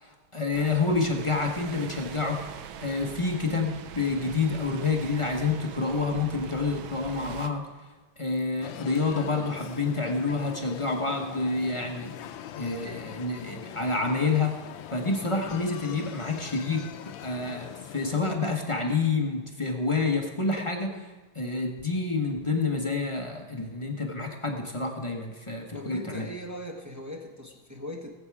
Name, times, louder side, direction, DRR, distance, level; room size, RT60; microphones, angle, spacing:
voice 1, 0.0-2.4 2.8-7.7 8.2-12.1 12.5-14.6 14.9-26.3, left 3 dB, 20° left, 1 dB, 0.9 m, -28 dB
sound 1, 0.5-7.5, right 8 dB, 75° right, 1.5 m, -42 dB
sound 2, 8.6-18.2, left 11 dB, 75° left, 1.3 m, -42 dB
voice 2, 25.7-28.1, equal, 15° right, 0 dB, 0.7 m, -39 dB
18.0 x 8.2 x 4.8 m, 1.2 s
omnidirectional pair, 2.3 m